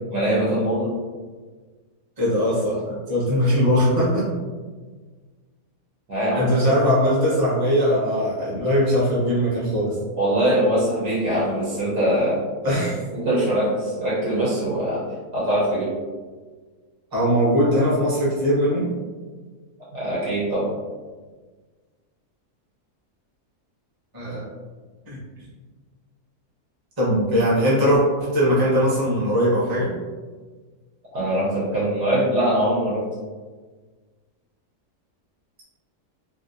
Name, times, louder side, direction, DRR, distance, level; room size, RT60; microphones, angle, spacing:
voice 1, 0.1-0.9 6.1-6.5 10.2-12.4 13.1-15.0 15.3-15.9 19.9-20.8 31.1-33.0, right 1 dB, 85° right, -8 dB, 1.6 m, -22 dB
voice 2, 2.2-4.3 6.3-10.0 12.6-13.0 17.1-18.9 24.1-24.5 25.1-25.2 27.0-29.9, equal, 15° right, -9 dB, 0.9 m, -20 dB
3.4 x 2.6 x 2.7 m, 1.4 s
omnidirectional pair, 1.7 m